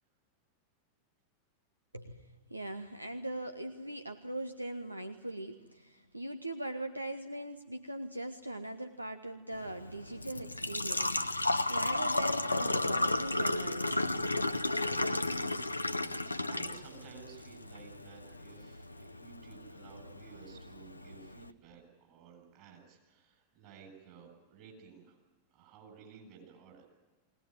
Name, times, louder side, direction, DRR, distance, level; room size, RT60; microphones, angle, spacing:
voice 1, 1.9-14.1 14.9-15.1, right 1 dB, 85° right, 8 dB, 0.9 m, -41 dB
Engine / Trickle dribble / Fill (with liquid), 9.5-21.5, left 2 dB, 85° left, 0.8 m, -34 dB
voice 2, 16.0-25.2 25.5-26.8, right 7 dB, 40° right, 3 dB, 7.8 m, -55 dB
21.5 x 19.0 x 9.6 m, 1.2 s
figure-of-eight pair, 90°, 0 cm